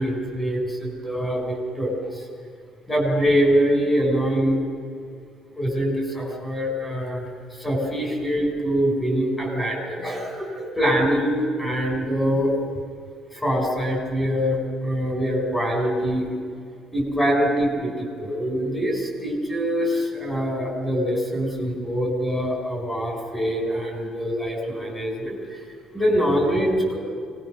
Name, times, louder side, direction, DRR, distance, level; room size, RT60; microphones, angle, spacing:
voice 1, 0.0-2.2 2.9-4.6 5.5-7.2 7.6-12.6 13.3-16.3 16.9-25.6 25.9-27.0, equal, 10° left, 1 dB, 5.0 m, -24 dB
23.0 x 19.0 x 6.3 m, 2.3 s
cardioid pair, 150°, 0 cm